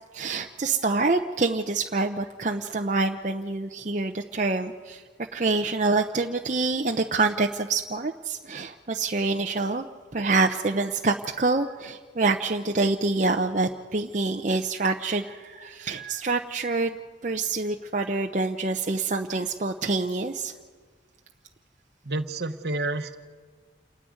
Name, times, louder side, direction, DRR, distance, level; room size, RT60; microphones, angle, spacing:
voice 1, 0.1-5.0 5.3-9.8 10.1-17.0 17.2-20.5, right 3 dB, 40° right, 3 dB, 0.7 m, -26 dB
voice 2, 22.0-23.2, right 2 dB, 60° right, 9 dB, 1.1 m, -29 dB
28.0 x 10.0 x 9.4 m, 1.5 s
head